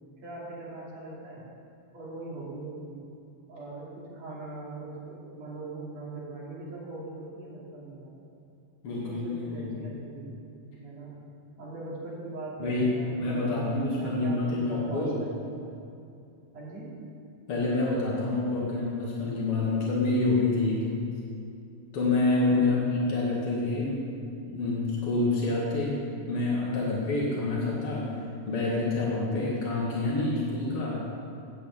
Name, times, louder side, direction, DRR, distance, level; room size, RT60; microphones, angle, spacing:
voice 1, 0.2-1.5 1.9-3.0 3.5-8.1 8.9-10.3 10.6-11.2 11.6-15.4 16.5-17.0 22.5-22.9, right 2 dB, 40° right, -7 dB, 3.5 m, -40 dB
voice 2, 8.8-9.7 12.6-15.2 17.5-20.9 21.9-24.1 24.5-26.0 26.3-28.2 28.4-31.0, left 2 dB, 65° left, -5 dB, 1.4 m, -27 dB
9.4 x 9.0 x 8.3 m, 2.5 s
omnidirectional pair, 5.7 m